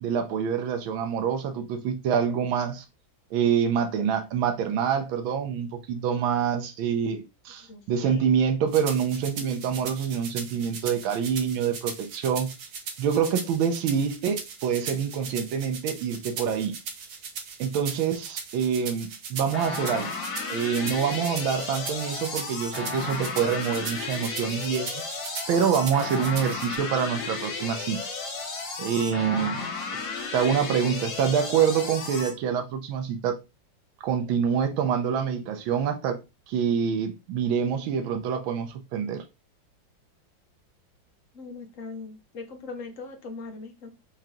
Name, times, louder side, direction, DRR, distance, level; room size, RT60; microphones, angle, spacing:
voice 1, 0.0-2.8 3.3-12.5 13.0-16.7 17.6-20.2 20.5-25.0 25.5-28.0 28.8-29.6 30.3-33.3 34.0-36.2 36.5-39.2, right 7 dB, 90° right, 1.5 m, -26 dB
voice 2, 7.6-8.3 30.0-30.2 41.3-43.9, left 3 dB, 50° left, 1.0 m, -40 dB
sound 1, 8.7-26.8, right 5 dB, 60° right, 1.1 m, -38 dB
sound 2, 19.5-32.3, left 4 dB, 70° left, 1.8 m, -34 dB
5.0 x 2.8 x 3.7 m
omnidirectional pair, 2.1 m